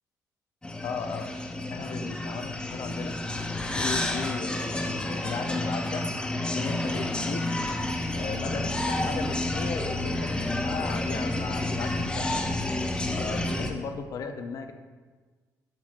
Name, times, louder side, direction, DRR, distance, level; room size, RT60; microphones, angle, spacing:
sound 1, 0.6-13.7, left 2 dB, 15° left, 0.6 m, -30 dB
voice 1, 0.8-1.3 1.7-3.1 3.7-6.1 6.5-7.5 8.2-12.4 13.2-14.7, left 5 dB, 65° left, 7 dB, 0.6 m, -36 dB
sound 2, 7.6-13.6, equal, 30° right, 1.6 m, -38 dB
7.2 x 6.1 x 2.5 m, 1.4 s
cardioid pair, 100°, 6 cm